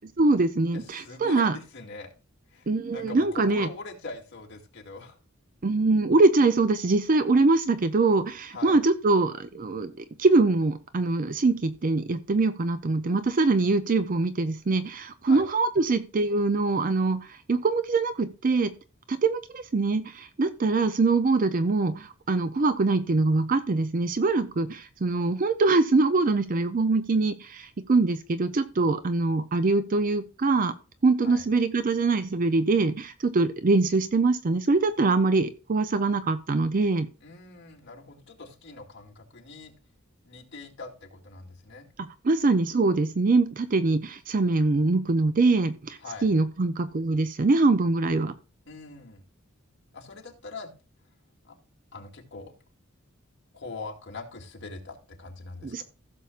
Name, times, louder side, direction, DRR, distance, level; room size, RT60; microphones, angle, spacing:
voice 1, 0.2-1.6 2.7-3.7 5.6-18.7 19.1-30.7 31.0-37.1 42.0-48.3 55.6-55.8, right 3 dB, 40° right, 12 dB, 0.5 m, -23 dB
voice 2, 0.7-2.1 2.5-5.2 8.5-8.8 15.3-15.5 31.2-31.4 37.2-39.7 40.2-41.9 46.0-46.3 48.7-49.3 49.9-50.7 51.4-51.6 51.9-52.5 53.5-55.8, left 3 dB, 60° left, 1 dB, 2.2 m, -42 dB
15.5 x 6.9 x 2.4 m, 0.33 s
head